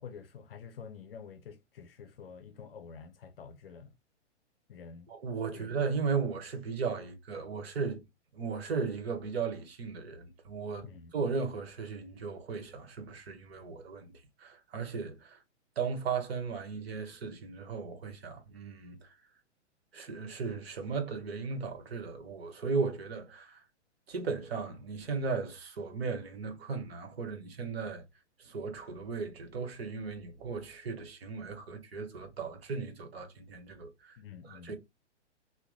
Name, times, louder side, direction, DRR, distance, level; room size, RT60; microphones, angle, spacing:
voice 1, 0.0-3.9 4.7-5.1 5.5-5.7 10.8-11.1 34.2-34.8, left 6 dB, 55° left, 0.7 m, -48 dB
voice 2, 5.1-8.0 8.3-14.1 14.4-15.4 15.8-19.1 19.9-23.6 24.1-28.0 28.4-34.2 34.5-34.8, right 5 dB, 55° right, 1.1 m, -36 dB
2.8 x 2.2 x 3.7 m
figure-of-eight pair, 115°, 35 cm